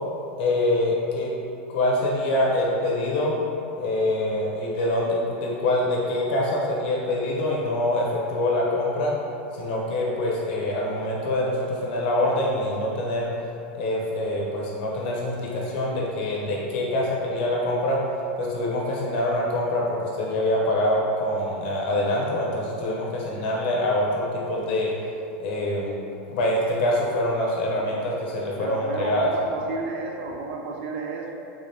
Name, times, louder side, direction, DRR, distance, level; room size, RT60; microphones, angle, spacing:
voice 1, 0.4-1.3 1.7-3.3 3.8-9.1 9.5-13.3 13.7-18.0 18.4-24.9 25.4-25.9 26.3-29.3, left 1 dB, 55° left, -3 dB, 0.7 m, -25 dB
voice 2, 28.6-31.3, right 3 dB, 65° right, 0 dB, 0.4 m, -32 dB
3.5 x 3.3 x 2.7 m, 2.7 s
supercardioid pair, 170°, 7 cm